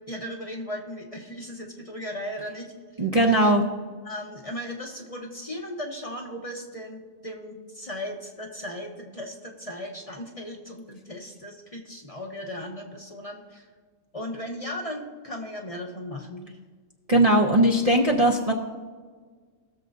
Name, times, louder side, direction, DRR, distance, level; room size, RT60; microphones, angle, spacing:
voice 1, 0.1-2.7 3.0-3.5 4.0-13.7 14.1-16.6, left 1 dB, 30° left, 1 dB, 0.8 m, -37 dB
voice 2, 3.0-3.6 17.1-18.5, right 1 dB, 35° right, -1 dB, 0.6 m, -19 dB
19.5 x 6.8 x 2.6 m, 1.5 s
omnidirectional pair, 1.4 m